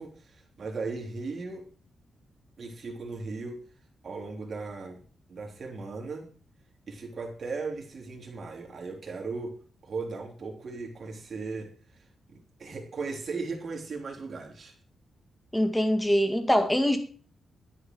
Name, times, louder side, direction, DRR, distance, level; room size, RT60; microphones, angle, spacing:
voice 1, 0.0-1.7 2.6-3.6 4.0-5.0 5.3-6.3 6.9-9.5 9.8-14.7, right 4 dB, 50° right, 1 dB, 3.6 m, -37 dB
voice 2, 15.5-17.0, equal, 5° left, 6 dB, 2.0 m, -23 dB
11.5 x 9.6 x 4.8 m, 0.42 s
cardioid pair, 115°, 0 cm